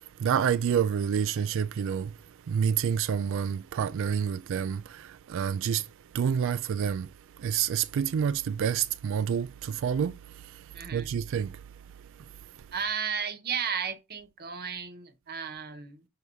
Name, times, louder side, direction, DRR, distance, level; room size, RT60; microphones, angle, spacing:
voice 1, 0.2-2.1 2.5-5.8 6.1-7.1 7.4-10.1 10.9-11.5, right 8 dB, 60° right, 0.3 m, -28 dB
voice 2, 10.7-11.1 12.7-16.1, right 6 dB, 45° right, 1.0 m, -34 dB
6.2 x 3.4 x 5.3 m
head